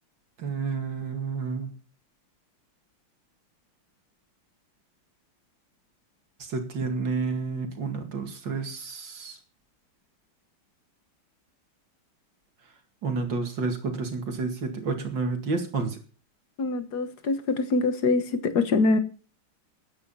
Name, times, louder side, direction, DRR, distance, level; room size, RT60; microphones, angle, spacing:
voice 1, 0.4-1.7 6.4-9.4 13.0-16.0, right 4 dB, 60° right, 2.8 m, -30 dB
voice 2, 16.6-19.0, left 3 dB, 50° left, 1.7 m, -24 dB
14.0 x 9.6 x 5.6 m
omnidirectional pair, 2.3 m